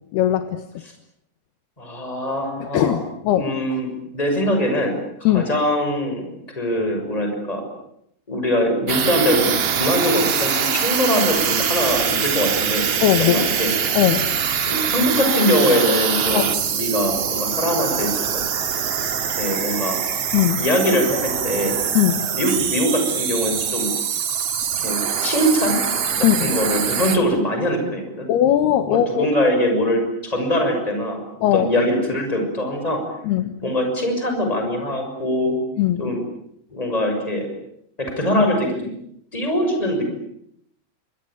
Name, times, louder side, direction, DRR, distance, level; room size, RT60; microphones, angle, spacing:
voice 1, 0.1-0.6 2.6-3.5 5.2-5.4 13.0-13.5 13.9-14.3 16.3-16.4 20.3-20.6 21.9-22.3 26.2-26.5 28.3-29.3 31.4-31.7 33.2-33.6 35.8-36.1, left 11 dB, 75° left, 9 dB, 3.2 m, -19 dB
voice 2, 1.8-2.9 3.3-6.3 6.6-7.7 8.3-12.9 13.2-13.7 14.4-18.4 19.4-20.0 20.6-21.8 22.3-23.9 24.8-25.8 26.1-28.3 28.9-31.2 31.5-33.0 33.6-35.6 36.0-36.2 36.7-37.5 38.0-38.9 39.3-40.1, equal, 10° left, 4 dB, 6.4 m, -22 dB
sound 1, 8.9-27.2, right 7 dB, 50° right, 2.3 m, -23 dB
27.5 x 24.5 x 8.7 m, 0.75 s
omnidirectional pair, 4.9 m